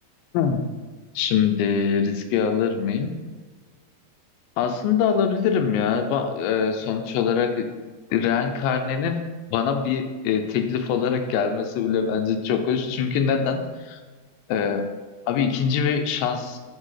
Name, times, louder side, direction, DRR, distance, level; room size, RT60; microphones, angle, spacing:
voice 1, 0.3-0.7 1.2-3.1 4.6-7.7 8.1-9.2 9.5-14.0 14.5-14.9 15.3-16.6, left 7 dB, 85° left, 6 dB, 2.3 m, -23 dB
7.5 x 4.3 x 3.2 m, 1.3 s
omnidirectional pair, 4.2 m